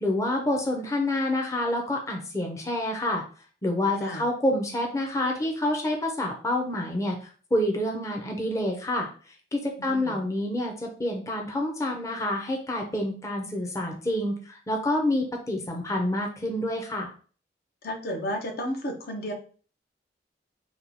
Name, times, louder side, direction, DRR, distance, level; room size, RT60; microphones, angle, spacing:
voice 1, 0.0-3.2 3.6-9.1 9.5-17.1, left 1 dB, 15° left, 1 dB, 0.6 m, -28 dB
voice 2, 9.8-10.2 17.8-19.3, equal, 55° left, 4 dB, 0.7 m, -32 dB
2.9 x 2.3 x 3.9 m, 0.40 s
head